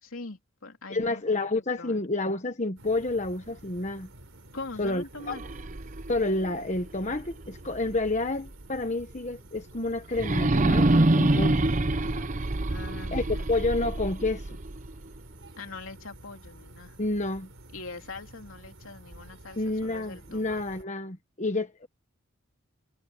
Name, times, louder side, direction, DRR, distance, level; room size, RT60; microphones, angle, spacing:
voice 1, 0.0-1.2 1.5-2.0 4.5-5.4 11.3-11.9 12.7-13.5 15.6-17.0 17.7-20.6, left 3 dB, 75° left, 3.2 m, -42 dB
voice 2, 0.9-4.1 4.8-5.4 6.1-11.6 13.1-14.6 17.0-17.5 19.6-21.9, left 2 dB, 35° left, 1.2 m, -29 dB
sound 1, 2.8-20.8, right 1 dB, 70° right, 4.1 m, -50 dB
sound 2, 5.2-8.2 8.6-8.7 10.1-15.2, right 2 dB, 35° right, 0.8 m, -26 dB
sound 3, 9.1-10.0 10.4-12.6 12.9-13.4, right 1 dB, 15° right, 5.0 m, -61 dB
head